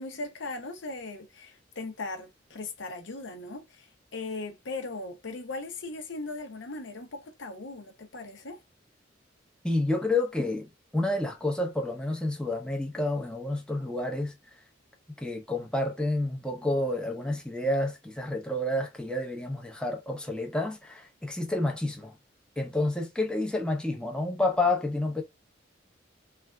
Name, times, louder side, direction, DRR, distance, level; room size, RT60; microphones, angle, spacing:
voice 1, 0.0-8.6, left 3 dB, 75° left, 0.8 m, -38 dB
voice 2, 9.6-14.3 15.2-22.1 22.6-25.2, left 2 dB, 5° left, 0.6 m, -29 dB
3.3 x 2.5 x 2.3 m
head